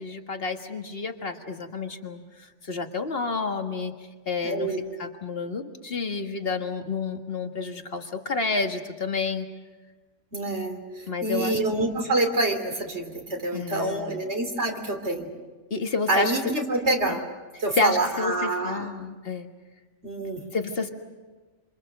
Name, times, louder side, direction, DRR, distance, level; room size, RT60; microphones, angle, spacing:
voice 1, 0.0-3.9 4.3-4.7 5.0-9.5 11.1-11.6 13.5-14.2 15.7-16.3 17.8-19.5 20.5-20.9, left 4 dB, 50° left, 5 dB, 1.9 m, -30 dB
voice 2, 4.4-4.8 10.3-15.3 16.1-17.2 17.6-19.0 20.0-20.4, right 2 dB, 65° right, 4 dB, 3.5 m, -27 dB
27.0 x 26.5 x 6.7 m, 1.3 s
omnidirectional pair, 1.3 m